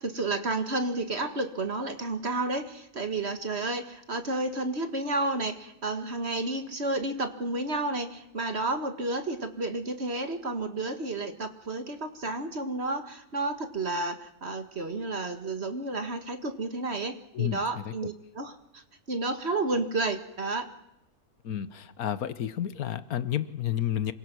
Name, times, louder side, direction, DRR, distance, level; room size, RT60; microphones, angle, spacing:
voice 1, 0.0-20.7, right 2 dB, 45° right, 8 dB, 2.0 m, -31 dB
voice 2, 17.3-17.9 21.4-24.1, left 10 dB, 75° left, 14 dB, 1.5 m, -31 dB
27.5 x 23.5 x 6.2 m, 0.86 s
omnidirectional pair, 1.6 m